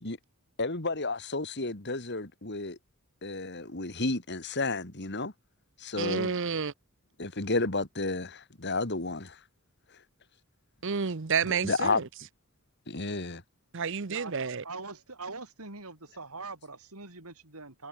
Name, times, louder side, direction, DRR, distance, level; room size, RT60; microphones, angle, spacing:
voice 1, 0.6-2.8 3.2-5.3 5.8-6.3 7.2-9.4 11.6-12.0 12.9-13.4, left 3 dB, 50° left, 2.6 m, -31 dB
voice 2, 6.0-6.7 10.8-12.1 13.7-14.6, right 6 dB, 55° right, 0.8 m, -30 dB
voice 3, 14.1-17.9, right 3 dB, 80° right, 5.9 m, -43 dB
head